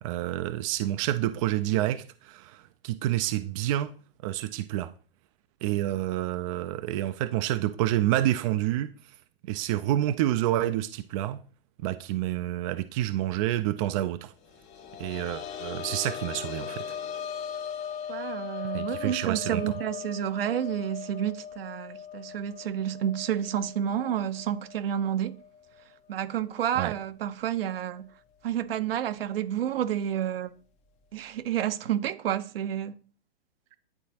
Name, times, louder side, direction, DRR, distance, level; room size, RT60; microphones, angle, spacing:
voice 1, 0.0-3.9 4.2-4.9 5.6-8.9 9.5-11.4 11.8-14.3 15.0-17.0 18.7-19.6 26.8-26.9, right 13 dB, 35° right, 0.4 m, -28 dB
sound 1, 14.5-26.0 26.3-26.4 27.9-28.0, left 8 dB, 25° left, 0.6 m, -39 dB
voice 2, 18.1-25.3 26.1-28.1 28.4-30.5 31.1-32.9, right 10 dB, 70° right, 0.8 m, -30 dB
10.5 x 3.8 x 2.8 m
hypercardioid pair, 120°, 31 cm